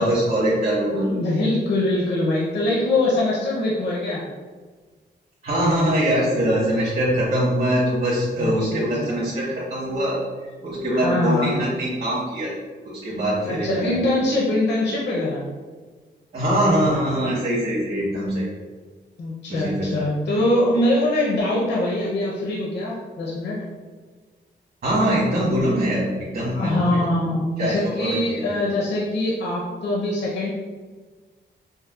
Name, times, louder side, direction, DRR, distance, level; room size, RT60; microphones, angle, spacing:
voice 1, 0.0-1.1 5.4-12.5 12.8-14.0 16.3-18.5 19.5-20.1 24.8-26.1 26.3-27.1 27.6-28.5, right 1 dB, 60° right, -10 dB, 1.3 m, -23 dB
voice 2, 0.9-4.2 8.4-9.2 10.9-11.6 13.4-15.4 19.2-23.6 26.5-30.5, left 1 dB, 65° left, -4 dB, 0.6 m, -23 dB
5.4 x 2.0 x 2.3 m, 1.4 s
wide cardioid pair, 145°, 19 cm